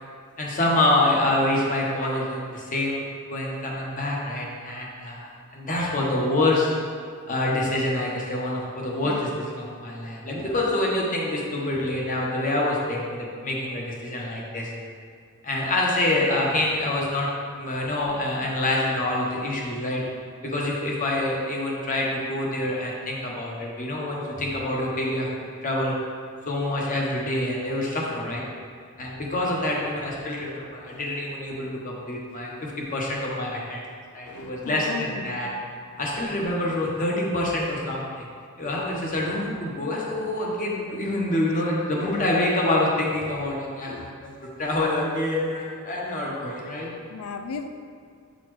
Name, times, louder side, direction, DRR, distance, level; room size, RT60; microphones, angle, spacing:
voice 1, 0.4-3.0 3.3-6.7 7.3-14.7 15.4-17.3 17.5-20.0 20.4-25.3 25.6-25.9 26.5-28.4 29.0-33.8 34.1-35.5 36.0-38.2 38.6-44.3 44.6-46.9, left 1 dB, 40° left, -3 dB, 1.0 m, -26 dB
voice 2, 30.6-31.0 34.2-35.4 43.8-44.1 47.1-47.8, left 4 dB, 85° left, 6 dB, 0.4 m, -36 dB
8.0 x 4.1 x 3.2 m, 2.2 s
head